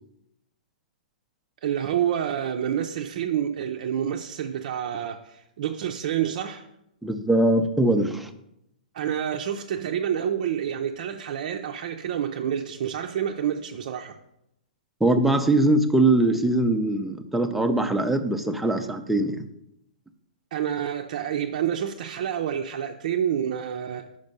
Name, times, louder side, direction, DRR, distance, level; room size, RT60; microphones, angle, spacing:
voice 1, 1.6-6.7 8.9-14.2 20.5-24.2, right 9 dB, 55° right, 3 dB, 0.5 m, -28 dB
voice 2, 7.0-8.3 15.0-19.4, right 2 dB, ahead, 6 dB, 0.5 m, -22 dB
5.3 x 5.2 x 5.3 m, 0.82 s
hypercardioid pair, 130°, 5 cm